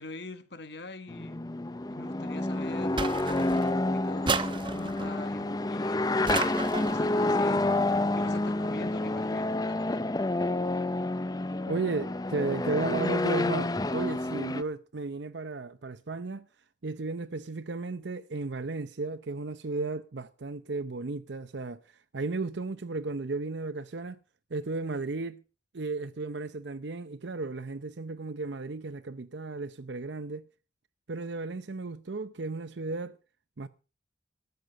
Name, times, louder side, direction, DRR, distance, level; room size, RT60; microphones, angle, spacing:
voice 1, 0.0-1.4 1.9-4.4 4.7-6.4 6.8-10.0, left 2 dB, 65° left, 1.7 m, -44 dB
sound 1, 1.1-14.6, left 2 dB, 20° left, 0.5 m, -29 dB
sound 2, 3.0-3.8 4.3-5.1 6.3-7.1, right 4 dB, 25° right, 0.9 m, -32 dB
voice 2, 11.7-16.5 16.8-24.2 24.5-25.4 25.7-30.4 31.1-33.2 33.6-33.7, right 3 dB, 70° right, 0.7 m, -34 dB
13.0 x 9.3 x 6.5 m
head